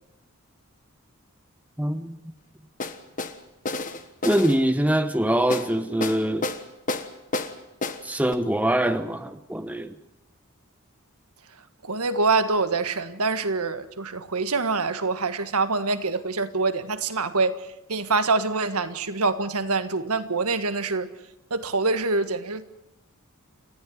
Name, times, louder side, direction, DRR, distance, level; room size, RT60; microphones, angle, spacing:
voice 1, 1.8-2.2 4.2-6.5 8.0-9.9, right 1 dB, 5° right, 0.9 m, -23 dB
sound 1, 2.8-3.3 3.7-4.6 5.5-5.7 6.0-6.6 6.9-7.5 7.8-8.0 8.3-8.4, left 3 dB, 35° left, 1.4 m, -29 dB
voice 2, 11.8-21.1 21.5-22.6, right 3 dB, 90° right, 1.6 m, -25 dB
29.0 x 14.5 x 9.6 m
head